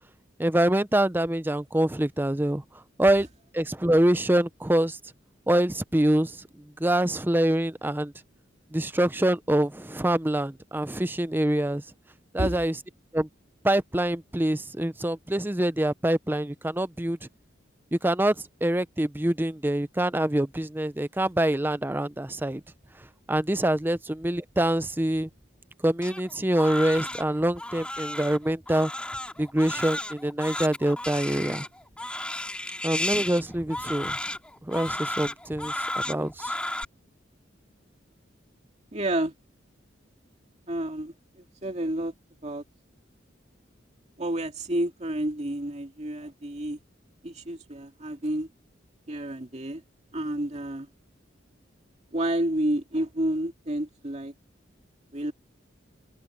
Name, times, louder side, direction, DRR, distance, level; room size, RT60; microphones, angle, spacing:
voice 1, 0.4-2.6 3.0-3.3 3.5-5.0 5.5-6.4 6.8-8.1 8.7-11.8 12.3-12.8 13.1-13.3 13.6-17.2 17.9-18.4 18.6-22.6 23.3-25.3 25.8-28.9 29.4-31.7 32.8-34.2 34.6-36.5, right 1 dB, 10° right, 0.6 m, -25 dB
Crying sobbing, 26.0-36.8, left 1 dB, 5° left, 3.1 m, -33 dB
voice 2, 38.9-39.3 40.7-42.1 42.4-42.6 44.2-46.8 47.2-48.5 49.1-49.8 50.1-50.9 52.1-54.3 55.1-55.3, right 1 dB, 35° right, 2.3 m, -30 dB
open air
head